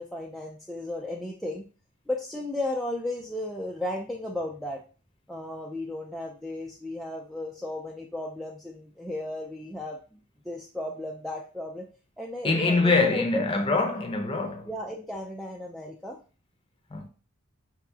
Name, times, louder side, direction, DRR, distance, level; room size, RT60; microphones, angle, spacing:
voice 1, 0.0-1.6 2.1-4.8 5.3-10.2 10.4-11.9 12.2-13.4 14.7-16.2, left 2 dB, ahead, 0.3 m, -34 dB
voice 2, 12.4-14.7 16.9-17.1, left 3 dB, 25° left, 0.7 m, -24 dB
4.9 x 2.8 x 3.5 m
head